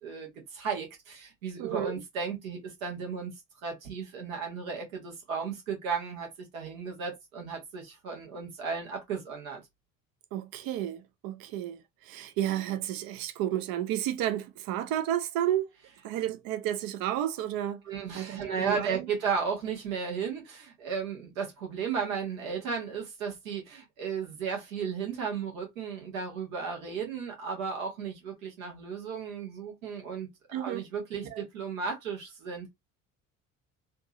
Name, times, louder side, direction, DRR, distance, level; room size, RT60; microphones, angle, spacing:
voice 1, 0.0-3.3 3.6-9.6 17.9-30.3 30.5-32.7, right 6 dB, 80° right, 1.6 m, -34 dB
voice 2, 1.6-2.0 10.3-15.7 16.0-17.8 18.1-19.1 30.5-30.9 31.3-31.4, right 12 dB, 55° right, 0.7 m, -32 dB
3.5 x 2.7 x 2.9 m
figure-of-eight pair, 55°, 41 cm